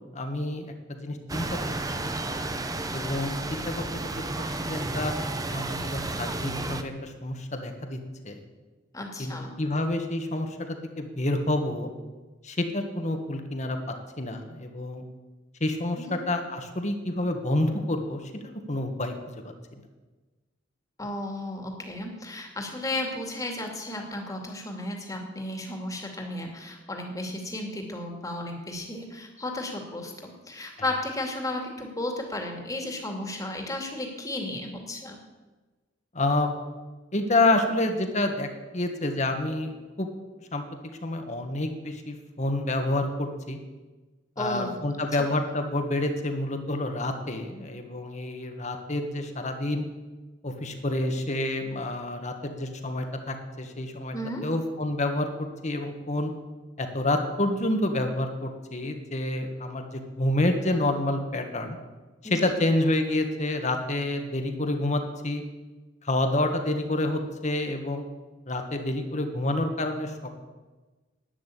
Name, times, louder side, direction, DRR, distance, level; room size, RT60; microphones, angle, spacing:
voice 1, 0.1-1.5 2.0-2.2 2.9-4.2 4.6-5.1 5.5-8.0 8.2-8.4 9.2-11.9 12.4-13.8 14.2-15.0 15.6-19.1 19.4-19.5 36.1-36.5 37.1-38.5 38.7-39.7 40.0-40.1 40.5-40.6 41.0-43.6 44.4-49.9 50.4-54.1 54.4-56.3 56.8-61.8 62.3-65.4 66.0-68.0 68.5-70.1, left 1 dB, 40° left, 5 dB, 1.7 m, -28 dB
sound 1, 1.3-6.8, right 2 dB, 20° right, 0.8 m, -32 dB
voice 2, 8.9-9.5 16.0-16.2 21.0-35.2 44.4-44.7 54.1-54.5 62.2-62.4, left 1 dB, 20° left, 2 dB, 2.4 m, -34 dB
11.5 x 9.9 x 8.5 m, 1.3 s
head